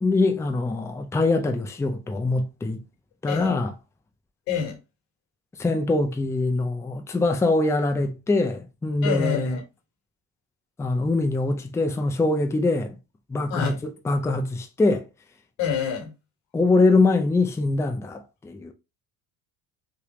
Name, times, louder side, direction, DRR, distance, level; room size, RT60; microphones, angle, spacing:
voice 1, 0.0-2.8 3.2-3.7 5.6-9.6 10.8-12.9 13.3-15.0 16.5-18.7, left 2 dB, 10° left, 0.4 m, -23 dB
voice 2, 4.5-4.8 9.0-9.6 13.5-13.8 15.6-16.1, left 7 dB, 80° left, 1.4 m, -27 dB
3.3 x 2.2 x 2.9 m
supercardioid pair, 90°, 36 cm